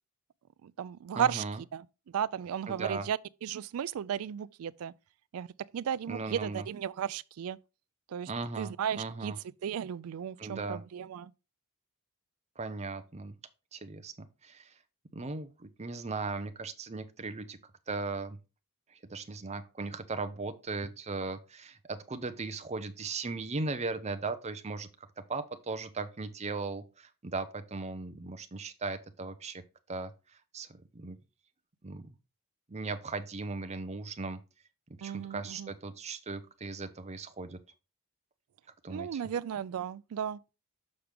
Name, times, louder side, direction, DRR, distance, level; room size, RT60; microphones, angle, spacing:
voice 1, 0.6-1.4 1.7-1.8 2.1-4.9 5.3-5.5 5.7-7.6 8.1-8.3 8.6-9.3 9.6-11.3 35.0-35.7 38.9-40.4, right 9 dB, 70° right, 0.3 m, -34 dB
voice 2, 1.1-1.6 2.7-3.1 6.1-6.7 8.3-9.4 10.4-10.8 12.6-13.4 13.7-14.7 15.1-17.6 17.9-18.4 18.9-24.9 25.3-29.6 29.9-30.1 30.5-31.2 31.8-32.1 32.7-34.4 35.0-37.6 38.8-39.2, right 3 dB, 30° right, 0.7 m, -38 dB
6.4 x 5.9 x 3.5 m
head